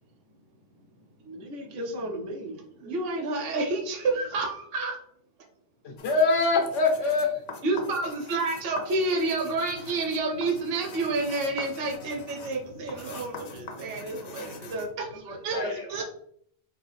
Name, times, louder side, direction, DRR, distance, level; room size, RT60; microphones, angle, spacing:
voice 1, 1.2-3.0 14.7-14.9 15.2-15.7, right 1 dB, 90° right, 3 dB, 1.1 m, -36 dB
voice 2, 2.8-5.0 7.6-14.8 15.3-16.0, right 3 dB, 60° right, 1 dB, 0.9 m, -29 dB
voice 3, 5.8-7.3 7.7-7.9 10.9-11.1 12.0-12.2 15.5-15.9, left 3 dB, 90° left, 2 dB, 1.2 m, -25 dB
sound 1, 6.0-14.9, left 4 dB, 65° left, 0.8 m, -45 dB
3.8 x 2.7 x 3.3 m, 0.66 s
omnidirectional pair, 1.2 m